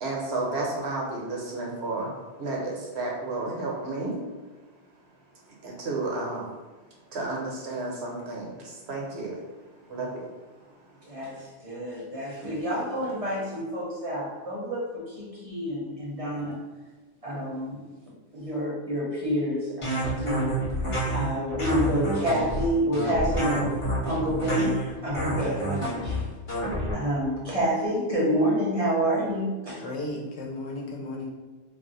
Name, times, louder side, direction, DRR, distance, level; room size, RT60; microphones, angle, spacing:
voice 1, 0.0-2.1 2.4-4.1 5.6-6.5 7.1-9.4 9.8-10.3, right 2 dB, 70° right, -2 dB, 0.9 m, -32 dB
voice 2, 11.0-16.6 17.2-17.8 18.3-20.5 21.1-23.7 24.0-26.2 26.9-29.8, equal, 35° right, -6 dB, 0.6 m, -28 dB
sound 1, 19.8-26.9, right 1 dB, 30° left, 0.7 m, -29 dB
voice 3, 29.8-31.3, left 2 dB, 75° left, -2 dB, 0.9 m, -34 dB
2.4 x 2.1 x 3.8 m, 1.3 s
omnidirectional pair, 1.2 m